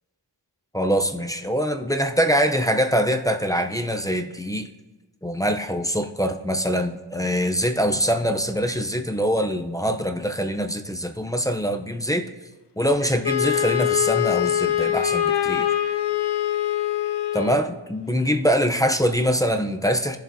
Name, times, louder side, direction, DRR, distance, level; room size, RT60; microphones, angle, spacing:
voice 1, 0.7-4.7 5.2-12.3 12.8-15.7 17.3-20.2, equal, 10° left, 4 dB, 0.6 m, -23 dB
Wind instrument woodwind instrument, 13.2-17.7, left 11 dB, 70° left, 0.6 m, -23 dB
19.0 x 7.4 x 2.7 m, 1.2 s
wide cardioid pair, 55°, 43 cm